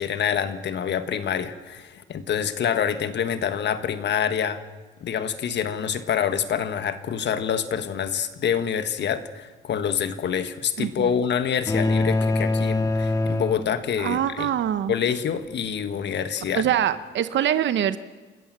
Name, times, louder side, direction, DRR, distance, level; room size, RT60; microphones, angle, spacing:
voice 1, 0.0-4.6 5.0-14.5 14.9-16.6, left 8 dB, 65° left, 10 dB, 1.5 m, -26 dB
voice 2, 10.8-11.1 14.0-14.9 16.5-18.0, right 10 dB, 70° right, 13 dB, 0.8 m, -24 dB
sound 1, 11.7-14.2, left 2 dB, 20° left, 2.0 m, -24 dB
28.5 x 14.0 x 7.6 m, 1.3 s
cardioid pair, 90°, 20 cm